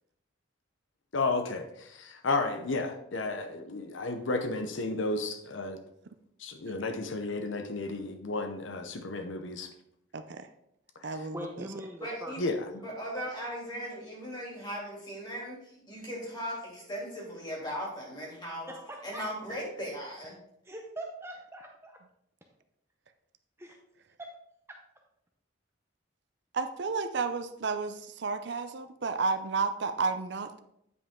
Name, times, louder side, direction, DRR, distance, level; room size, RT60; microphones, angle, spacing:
voice 1, 1.1-5.8 6.4-9.7 11.1-11.3 12.4-12.6, left 3 dB, 75° left, 6 dB, 0.8 m, -32 dB
voice 2, 10.1-10.5 11.0-11.7 26.5-30.6, right 4 dB, 60° right, 9 dB, 0.5 m, -32 dB
voice 3, 11.3-12.3 12.7-13.1 18.7-19.2 20.6-22.0 23.6-23.8 24.2-24.3 24.7-24.8, right 1 dB, 15° right, 1 dB, 0.6 m, -42 dB
voice 4, 12.0-12.4 12.8-18.7 19.0-20.3, equal, 20° left, -3 dB, 2.8 m, -38 dB
9.3 x 5.4 x 3.7 m, 0.76 s
head